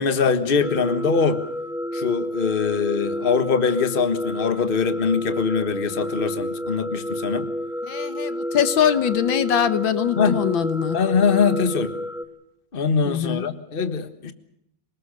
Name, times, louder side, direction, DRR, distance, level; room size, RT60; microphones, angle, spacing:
voice 1, 0.0-1.4 1.9-7.5 10.2-10.4 10.9-12.0 12.7-14.3, left 5 dB, 30° left, 11 dB, 1.5 m, -22 dB
sound 1, 0.6-12.2, equal, ahead, 2.0 m, -30 dB
voice 2, 7.9-11.0 13.1-13.5, left 9 dB, 70° left, 13 dB, 1.8 m, -22 dB
27.0 x 19.0 x 6.6 m, 0.77 s
omnidirectional pair, 2.2 m